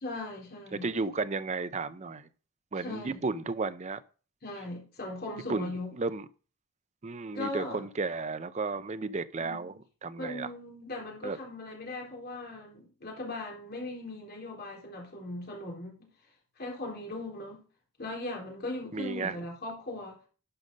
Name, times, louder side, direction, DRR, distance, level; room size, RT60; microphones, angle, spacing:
voice 1, 0.0-0.9 2.8-3.2 4.4-5.9 7.3-7.8 9.4-9.6 10.2-16.1 16.6-17.6 18.0-20.2, left 2 dB, 45° left, 3.6 m, -39 dB
voice 2, 0.7-2.3 2.7-4.0 5.5-6.3 7.0-10.5 11.2-11.4 18.9-19.4, right 3 dB, 30° right, 0.5 m, -33 dB
11.5 x 5.4 x 5.3 m
head